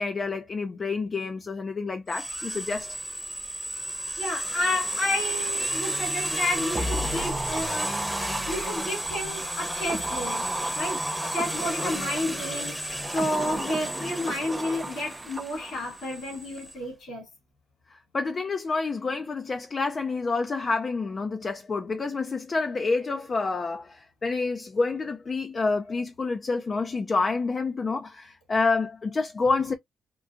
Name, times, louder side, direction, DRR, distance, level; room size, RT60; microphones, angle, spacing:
voice 1, 0.0-3.0 11.8-11.9 18.1-29.7, left 4 dB, 40° left, 0.4 m, -28 dB
sound 1, 2.1-16.7, equal, ahead, 0.9 m, -33 dB
voice 2, 4.2-7.9 8.5-10.4 10.8-17.2, left 1 dB, 75° left, 2.4 m, -31 dB
sound 2, 6.8-12.2 12.8-16.1 16.4-16.5, right 1 dB, 25° right, 0.5 m, -34 dB
3.7 x 2.2 x 2.4 m
cardioid pair, 75°, 0 cm